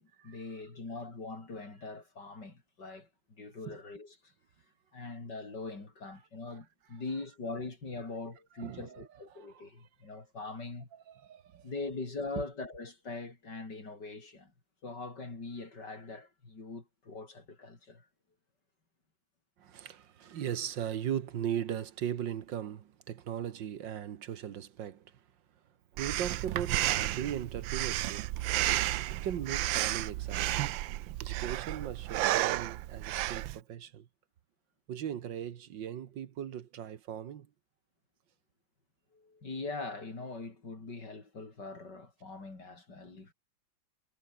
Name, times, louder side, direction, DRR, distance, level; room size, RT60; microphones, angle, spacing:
voice 1, 0.0-4.3 4.9-10.9 11.6-14.5 14.8-18.1 39.1-43.3, left 3 dB, 60° left, 5.3 m, -42 dB
voice 2, 8.6-9.6 10.9-11.7 19.6-25.3 25.9-28.3 29.1-34.1 34.9-37.5, right 9 dB, 70° right, 1.8 m, -38 dB
Breathing, 26.0-33.6, right 15 dB, 85° right, 1.4 m, -32 dB
omnidirectional pair, 2.1 m